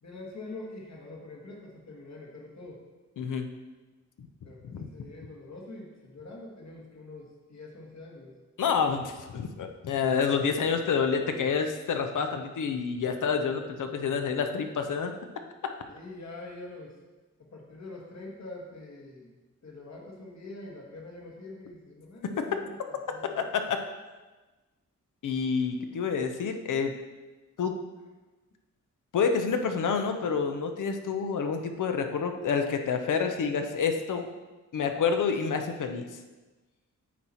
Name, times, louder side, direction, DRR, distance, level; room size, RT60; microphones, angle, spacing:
voice 1, 0.0-2.8 4.4-8.3 15.9-17.0 17.4-19.3 19.6-22.8 23.1-23.4, left 2 dB, 65° left, -1 dB, 1.7 m, -44 dB
voice 2, 3.2-3.5 4.6-4.9 8.6-15.1 15.6-15.7 23.7-23.8 25.2-26.9 27.6-27.8 29.1-34.3 34.7-36.1, left 6 dB, 85° left, 6 dB, 0.7 m, -28 dB
8.5 x 4.2 x 4.4 m, 1.2 s
cardioid pair, 70°, 30 cm